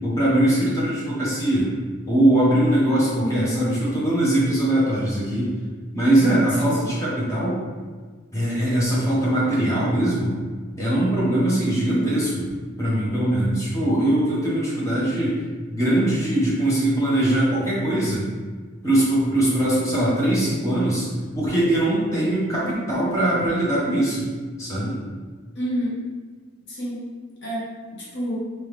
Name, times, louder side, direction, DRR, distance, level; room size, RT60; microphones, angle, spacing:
voice 1, 0.0-1.7 2.0-5.5 5.9-7.6 8.3-10.3 10.8-12.5 12.8-15.4 15.7-18.3 18.8-21.1 21.3-24.3 24.6-25.0, right 1 dB, 15° left, -7 dB, 1.0 m, -21 dB
voice 2, 3.1-3.6 6.6-6.9 25.5-26.0 26.7-27.0 27.4-28.4, equal, 55° left, -6 dB, 1.0 m, -28 dB
3.4 x 3.0 x 3.2 m, 1.5 s
head